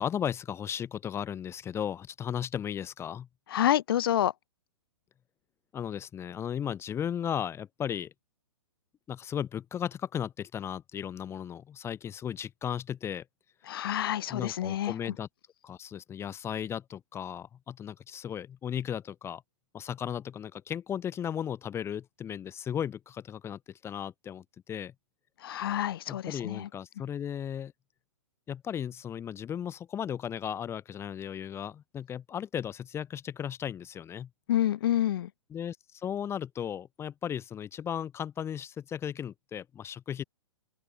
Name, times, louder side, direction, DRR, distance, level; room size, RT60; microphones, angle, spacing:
voice 1, 0.0-3.3 5.7-8.1 9.1-13.2 14.3-15.3 15.6-19.4 19.7-24.9 26.1-27.7 28.5-34.3 35.5-40.2, left 9 dB, 15° left, 2.4 m, -35 dB
voice 2, 3.5-4.3 13.7-14.9 25.4-26.7 34.5-35.3, left 12 dB, 50° left, 1.3 m, -28 dB
open air
figure-of-eight pair, 115°, 16 cm